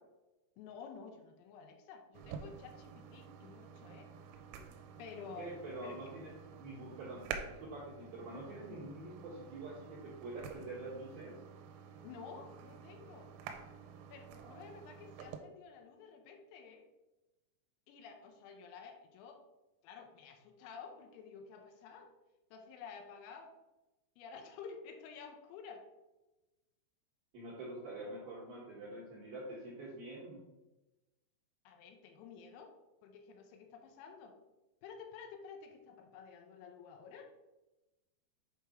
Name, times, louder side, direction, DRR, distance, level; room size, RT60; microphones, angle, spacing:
voice 1, 0.6-4.1 5.0-6.1 12.0-13.3 14.1-16.9 17.9-19.4 19.8-22.1 22.5-23.5 24.2-25.9 31.7-34.4 34.8-37.3, left 6 dB, 85° left, 3 dB, 3.4 m, -51 dB
sound 1, 2.1-15.4, right 7 dB, 85° right, 3.2 m, -50 dB
voice 2, 5.4-11.4 14.4-14.6 27.3-30.4, right 2 dB, 65° right, -7 dB, 2.4 m, -46 dB
7.9 x 3.4 x 4.9 m, 1.1 s
omnidirectional pair, 5.9 m